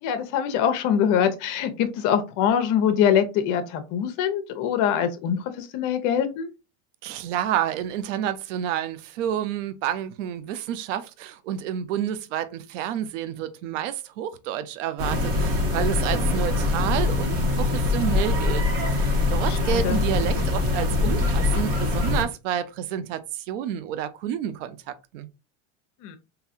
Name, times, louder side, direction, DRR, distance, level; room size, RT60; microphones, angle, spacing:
voice 1, 0.0-6.5 19.3-20.0 26.0-26.2, left 8 dB, 55° left, 0.8 m, -24 dB
voice 2, 7.0-18.6 18.9-25.3, right 10 dB, 85° right, 0.6 m, -29 dB
sound 1, 15.0-22.2, left 3 dB, 40° right, 1.5 m, -23 dB
3.9 x 2.7 x 2.6 m
supercardioid pair, 120°, 37 cm